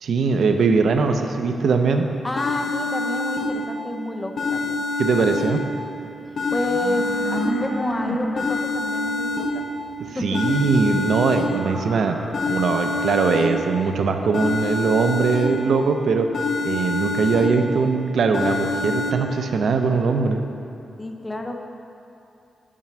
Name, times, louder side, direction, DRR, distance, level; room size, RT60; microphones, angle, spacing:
voice 1, 0.0-2.1 5.0-5.6 10.2-12.2 12.5-16.3 16.6-20.4, right 4 dB, 65° right, 5 dB, 0.5 m, -21 dB
sound 1, 1.9-2.0 2.4-3.9 4.4-5.9 6.4-7.9 8.4-9.9 10.3-11.9 12.3-13.9 14.3-15.9 16.3-17.9 18.3-19.1, left 2 dB, 65° left, 0.6 m, -26 dB
voice 2, 2.2-4.8 6.5-9.8 10.1-10.6 21.0-21.6, left 1 dB, 10° left, 4 dB, 0.5 m, -29 dB
sound 2, 6.3-13.1, equal, 30° right, 1.5 m, -33 dB
7.4 x 5.6 x 6.0 m, 2.7 s
wide cardioid pair, 170°, 0 cm